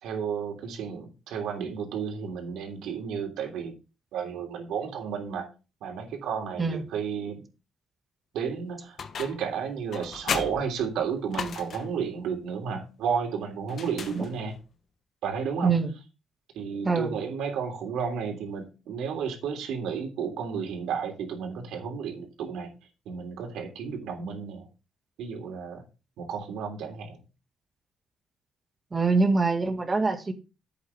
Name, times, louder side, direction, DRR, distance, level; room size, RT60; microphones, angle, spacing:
voice 1, 0.0-3.7 4.1-5.5 5.8-7.4 8.3-14.5 15.2-15.7 16.5-22.7 23.0-24.6 25.2-25.8 26.2-27.2, right 6 dB, 85° right, 3 dB, 3.2 m, -32 dB
sound 1, 9.0-9.5 9.9-12.0 13.7-14.6, left 6 dB, 55° left, 1.3 m, -35 dB
voice 2, 16.8-17.2 28.9-30.3, right 4 dB, 25° right, 5 dB, 2.2 m, -24 dB
11.5 x 8.3 x 3.7 m, 0.31 s
cardioid pair, 90°, 0 cm